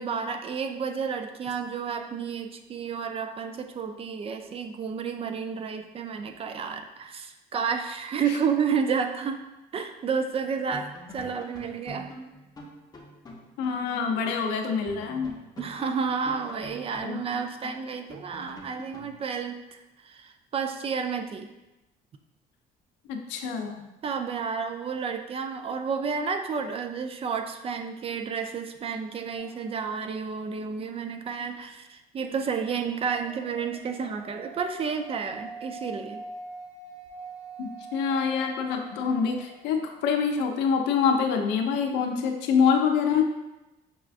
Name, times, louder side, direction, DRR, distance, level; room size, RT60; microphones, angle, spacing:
voice 1, 0.0-9.4 9.7-12.1 15.6-21.5 24.0-36.2, right 6 dB, 35° right, 6 dB, 0.3 m, -31 dB
sound 1, 10.3-10.4 10.7-14.2 14.4-14.5 14.9-19.1, equal, 20° left, 0.8 m, -45 dB
voice 2, 13.6-15.3 17.0-17.2 23.1-23.8 37.6-43.2, left 6 dB, 90° left, 4 dB, 0.5 m, -25 dB
sound 2, 29.4-30.2 32.6-40.0, right 3 dB, 85° right, 1.0 m, -44 dB
6.0 x 2.3 x 2.4 m, 1.0 s
cardioid pair, 110°, 18 cm